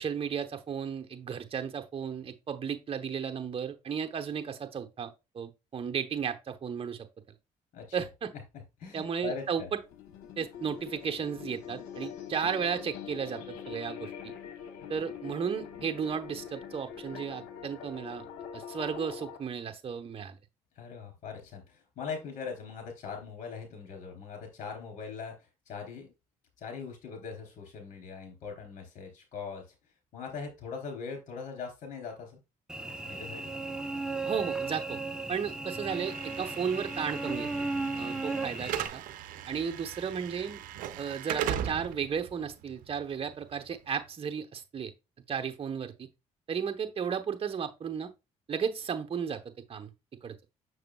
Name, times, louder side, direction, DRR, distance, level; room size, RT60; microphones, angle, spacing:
voice 1, 0.0-7.1 7.9-8.3 8.9-9.8 10.4-14.3 14.9-18.3 18.5-20.4 34.3-35.0 35.3-37.7 38.0-39.0 39.5-40.6 41.0-44.9 45.3-46.1 46.5-48.1 48.5-49.4 49.7-49.9 50.2-50.3, right 7 dB, 40° right, 1.0 m, -34 dB
voice 2, 8.8-9.7 20.8-26.1 26.6-29.6 30.1-32.4 33.1-33.5, left 5 dB, 65° left, 3.5 m, -41 dB
sound 1, 9.8-19.4, left 8 dB, 90° left, 1.0 m, -43 dB
Cricket / Buzz, 32.7-38.9, right 3 dB, 5° right, 1.0 m, -35 dB
Slam / Alarm, 35.9-44.0, right 10 dB, 75° right, 0.6 m, -39 dB
6.6 x 6.3 x 2.3 m
cardioid pair, 80°, 14 cm